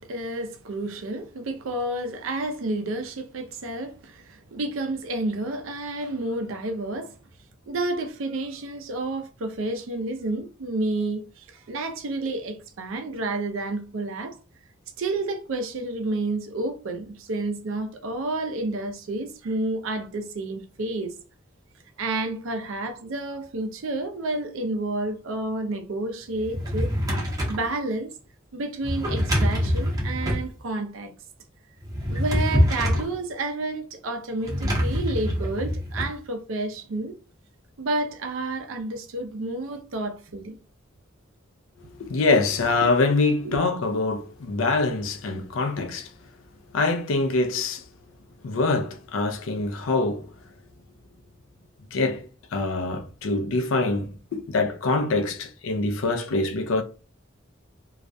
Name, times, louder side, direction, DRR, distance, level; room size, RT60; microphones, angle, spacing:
voice 1, 0.0-7.1 7.7-14.4 15.0-21.1 22.0-28.1 28.5-31.1 32.1-37.2 37.8-40.6 43.4-43.6, right 2 dB, 80° right, 0.5 m, -30 dB
Drawer open or close, 26.3-27.7 28.8-30.5 31.8-33.1 34.4-36.1, equal, 20° right, 0.6 m, -25 dB
voice 2, 41.8-46.1 46.7-47.8 48.4-50.3 51.9-56.8, left 3 dB, 75° left, 0.4 m, -24 dB
2.3 x 2.1 x 2.6 m
head